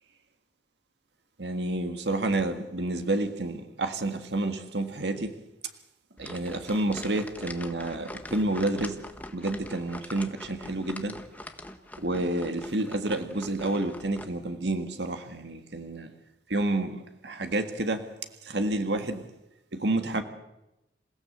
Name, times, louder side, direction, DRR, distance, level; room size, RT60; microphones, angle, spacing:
voice 1, 1.4-5.4 6.2-9.0 9.3-11.2 12.0-16.1 16.5-18.1 18.4-19.2 19.7-20.2, right 2 dB, 75° right, 7 dB, 1.8 m, -29 dB
sound 1, 6.2-14.2, left 1 dB, 10° left, 1.4 m, -43 dB
28.0 x 16.5 x 8.0 m, 0.92 s
head